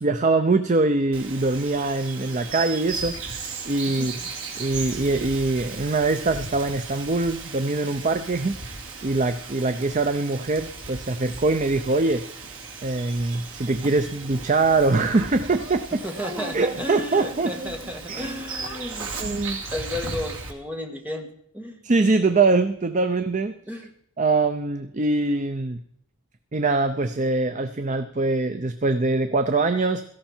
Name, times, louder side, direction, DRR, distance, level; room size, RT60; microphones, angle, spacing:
voice 1, 0.0-4.2 4.6-12.2 12.8-16.0 16.5-17.5 18.1-18.3 19.2-19.6 21.8-23.6 24.2-25.8 26.5-30.0, right 3 dB, 35° right, 9 dB, 0.6 m, -23 dB
Bird vocalization bird call bird song, 1.1-20.5, right 4 dB, 65° right, 2.5 m, -36 dB
voice 2, 15.9-19.2 19.5-21.3 21.5-21.8 23.7-23.9, left 1 dB, 10° right, 2 dB, 1.7 m, -33 dB
17.0 x 13.5 x 4.5 m, 0.71 s
head